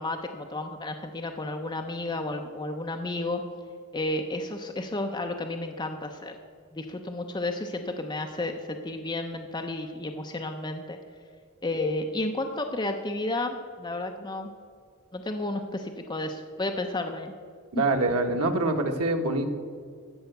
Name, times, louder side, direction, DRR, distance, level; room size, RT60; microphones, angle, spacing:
voice 1, 0.0-3.4 3.9-6.4 6.7-11.0 11.6-14.5 15.1-17.3 17.7-17.8, left 2 dB, 20° left, 4 dB, 0.6 m, -32 dB
voice 2, 17.7-19.5, right 2 dB, 80° right, 4 dB, 1.3 m, -25 dB
15.0 x 5.7 x 7.9 m, 2.1 s
head